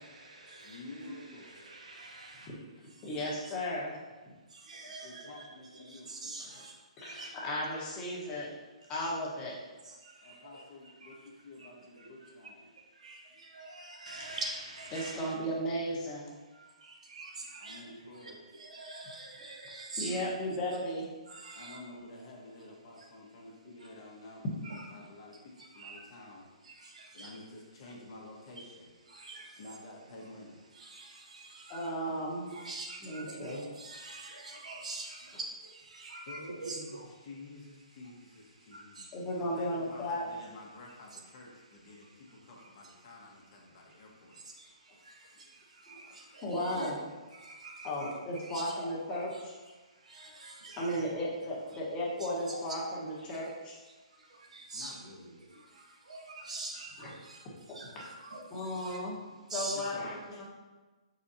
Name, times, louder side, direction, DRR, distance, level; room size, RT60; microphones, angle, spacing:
voice 1, 0.6-1.5 5.0-6.1 10.2-12.7 17.6-18.4 21.5-24.4 24.9-26.4 27.1-28.9 29.3-30.6 36.3-39.0 39.3-44.4 50.9-51.0 51.4-51.8 54.7-55.4 59.7-60.4, left 2 dB, 50° left, 1.2 m, -50 dB
voice 2, 2.0-2.3 4.7-5.5 6.1-6.4 7.2-7.3 13.0-13.2 13.6-15.2 17.2-17.3 17.6-17.8 18.7-20.2 21.4-21.8 25.8-25.9 27.2-27.3 29.3-29.4 32.5-35.1 36.0-36.8 46.6-46.9 47.6-48.1 48.5-48.6 50.6-51.0 54.7-54.9 56.1-56.2 56.5-56.9 57.8-58.4 58.8-59.0 59.5-59.9, right 3 dB, 80° right, 1.0 m, -42 dB
voice 3, 3.0-3.9 4.3-4.4 6.4-6.6 7.0-8.5 8.9-9.6 14.3-14.4 14.9-16.3 20.0-21.1 31.7-32.5 33.0-33.6 39.1-40.3 46.4-47.0 47.8-49.5 50.8-53.8 57.0-57.1 58.5-59.2 59.5-60.5, equal, 25° left, 1.2 m, -35 dB
4.6 x 4.1 x 2.7 m
hypercardioid pair, 140°, 4 cm